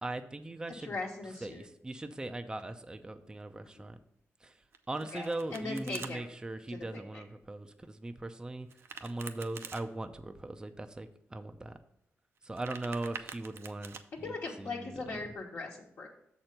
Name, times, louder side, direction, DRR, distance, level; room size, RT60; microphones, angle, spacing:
voice 1, 0.0-1.0 1.4-4.0 4.4-4.5 4.9-8.7 9.0-11.8 12.4-15.0, right 2 dB, 15° right, 8 dB, 0.5 m, -40 dB
voice 2, 0.8-1.6 5.1-6.3 6.9-7.2 14.2-16.1, left 3 dB, 60° left, -4 dB, 1.2 m, -39 dB
Domestic sounds home sounds, 4.7-6.1 8.7-9.8 12.4-14.0, right 6 dB, 65° right, 0.6 m, -46 dB
6.6 x 4.4 x 6.5 m, 0.77 s
cardioid pair, 100°, 5 cm